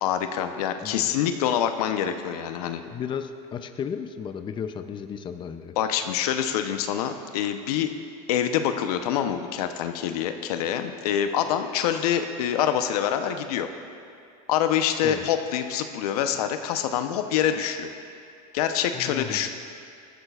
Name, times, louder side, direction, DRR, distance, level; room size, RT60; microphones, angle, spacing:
voice 1, 0.0-2.8 5.8-7.9 8.3-13.7 14.5-17.9 18.5-19.5, left 9 dB, 80° left, 7 dB, 0.9 m, -26 dB
voice 2, 0.8-1.2 2.9-5.7 15.0-15.3 18.9-19.5, left 7 dB, 25° left, 8 dB, 0.6 m, -34 dB
19.5 x 13.0 x 2.5 m, 2.4 s
supercardioid pair, 115°, 19 cm